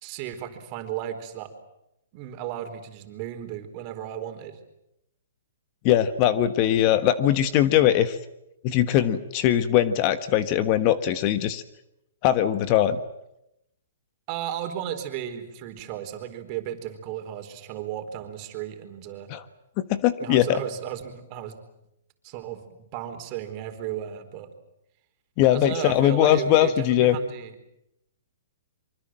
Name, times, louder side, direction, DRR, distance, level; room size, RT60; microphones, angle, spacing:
voice 1, 0.0-1.5 2.1-4.6 14.3-19.3 20.2-21.6 22.2-24.5 25.5-27.5, right 10 dB, 35° right, 6 dB, 4.2 m, -35 dB
voice 2, 5.8-8.2 8.6-11.6 12.2-13.0 19.3-19.4 19.8-20.6 25.4-27.2, left 11 dB, 35° left, 11 dB, 1.4 m, -21 dB
25.0 x 24.5 x 7.7 m, 0.83 s
hypercardioid pair, 145°, 0 cm